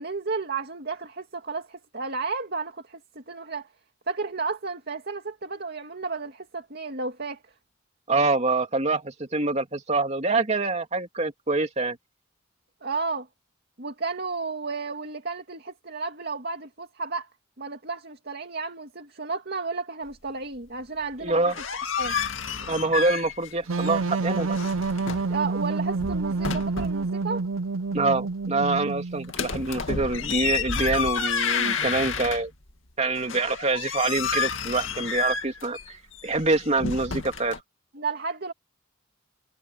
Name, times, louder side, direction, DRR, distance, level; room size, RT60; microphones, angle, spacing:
voice 1, 0.0-3.7 4.1-7.4 12.8-13.3 13.8-17.3 17.6-21.4 22.0-22.2 25.3-27.5 37.9-38.5, right 4 dB, 55° right, 2.3 m, -32 dB
voice 2, 8.1-12.0 21.2-21.6 22.7-24.6 27.9-32.5 33.0-36.0 36.2-37.6, right 3 dB, 35° right, 2.8 m, -25 dB
sound 1, 21.3-23.5 23.8-25.3 25.8-27.0 29.3-32.7 33.2-37.6, left 5 dB, 75° left, 2.3 m, -30 dB
sound 2, 23.7-29.3, right 3 dB, 90° right, 0.6 m, -28 dB
head